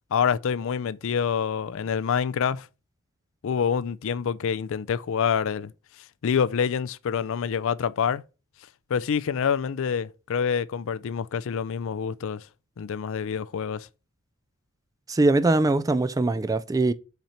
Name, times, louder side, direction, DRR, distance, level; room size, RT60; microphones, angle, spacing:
voice 1, 0.1-2.7 3.4-5.7 6.2-8.2 8.9-12.5 12.8-13.9, left 7 dB, 65° left, 0.4 m, -26 dB
voice 2, 15.1-16.9, right 2 dB, 15° right, 0.3 m, -22 dB
5.8 x 4.3 x 5.5 m
head